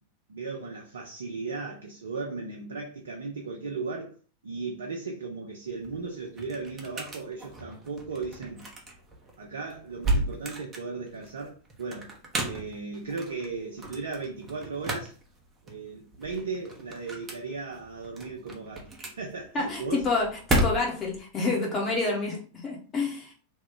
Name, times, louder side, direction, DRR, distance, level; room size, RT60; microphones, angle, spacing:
voice 1, 0.3-4.2 4.4-8.7 9.4-12.1 12.4-15.2 15.6-20.1, right 4 dB, 65° right, 0.5 m, -36 dB
sound 1, 5.7-21.2, right 1 dB, 20° right, 0.9 m, -34 dB
voice 2, 19.5-23.3, left 3 dB, 25° left, 1.0 m, -28 dB
3.0 x 2.3 x 3.7 m
figure-of-eight pair, 90°, 0 cm